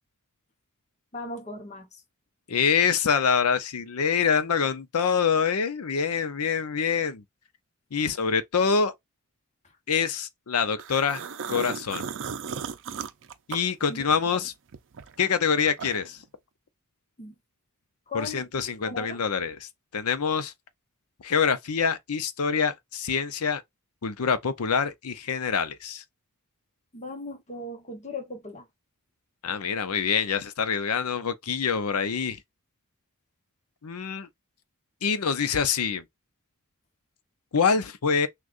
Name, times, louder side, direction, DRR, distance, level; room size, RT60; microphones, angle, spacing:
voice 1, 1.1-2.0 9.6-9.8 13.9-14.5 17.2-17.4 18.1-18.5 18.8-19.2 26.9-28.7, left 2 dB, 30° left, 1.0 m, -38 dB
voice 2, 2.5-7.2 7.9-8.9 9.9-11.2 11.5-12.0 13.5-14.5 15.2-16.2 18.1-20.5 21.2-23.6 24.0-26.0 29.4-32.4 33.8-34.3 35.0-36.0 37.5-38.3, left 6 dB, 80° left, 0.6 m, -25 dB
sound 1, 10.8-14.3 14.7-16.2, right 6 dB, 60° right, 0.5 m, -36 dB
6.2 x 2.4 x 2.5 m
head